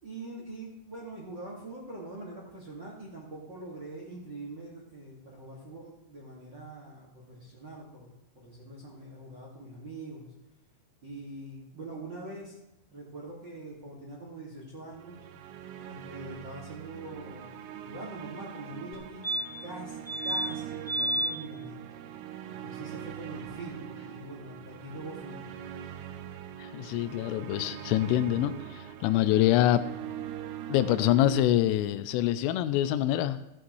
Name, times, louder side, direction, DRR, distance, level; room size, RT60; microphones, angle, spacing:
voice 1, 0.0-8.1 8.3-10.3 11.0-12.6 12.9-15.2 15.8-19.2 19.6-21.8 22.5-25.6, right 2 dB, 55° right, -4 dB, 1.3 m, -43 dB
sound 1, 14.9-31.5, right 10 dB, 80° right, 2.5 m, -42 dB
sound 2, 18.9-19.0 19.2-19.7 20.1-20.5 20.9-21.3 23.7-23.8 24.0-24.1, right 1 dB, 35° left, 2.1 m, -30 dB
voice 2, 26.6-29.8 30.7-33.4, left 13 dB, 85° left, 12 dB, 3.1 m, -25 dB
15.5 x 11.5 x 3.2 m, 0.89 s
omnidirectional pair, 5.8 m